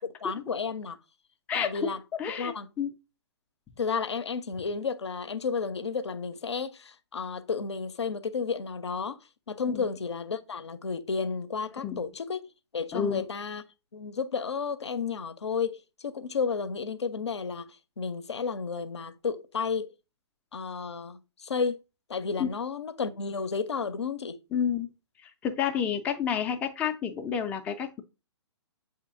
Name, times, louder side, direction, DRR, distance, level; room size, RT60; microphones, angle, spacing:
voice 1, 0.2-1.0 1.5-2.0 2.4-2.7 3.8-9.2 9.5-12.4 12.7-13.6 13.9-19.9 20.5-21.8 22.1-24.4, left 5 dB, 70° left, 0.5 m, -32 dB
voice 2, 1.5-1.9 2.2-2.9 9.7-9.9 11.8-12.0 12.9-13.3 22.4-22.5 24.5-24.9 25.2-28.0, left 8 dB, 10° left, 0.3 m, -30 dB
7.3 x 2.8 x 2.5 m
figure-of-eight pair, 120°, 15 cm